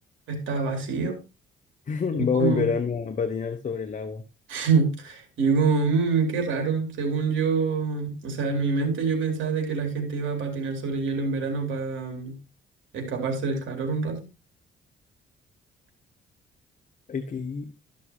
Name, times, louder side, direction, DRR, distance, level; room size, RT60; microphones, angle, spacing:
voice 1, 0.3-1.2 2.1-2.7 4.5-12.4 12.9-14.2, right 4 dB, 75° right, 2.9 m, -26 dB
voice 2, 1.9-4.2 17.1-17.7, left 6 dB, 40° left, 1.0 m, -27 dB
13.0 x 6.3 x 2.9 m
cardioid pair, 90°, 20 cm